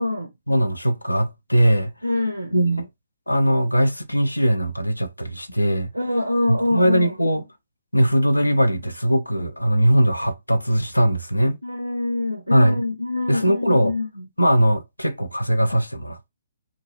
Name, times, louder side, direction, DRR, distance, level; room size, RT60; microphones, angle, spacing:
voice 1, 0.5-1.9 2.5-2.9 3.3-5.9 6.5-7.4 7.9-11.6 12.5-12.8 13.3-14.0 14.4-16.3, equal, 85° left, 0.5 m, -20 dB
voice 2, 2.0-2.5 5.9-7.1 11.6-14.3, left 2 dB, 85° right, 0.5 m, -25 dB
2.5 x 2.2 x 2.8 m
figure-of-eight pair, 130°, 0 cm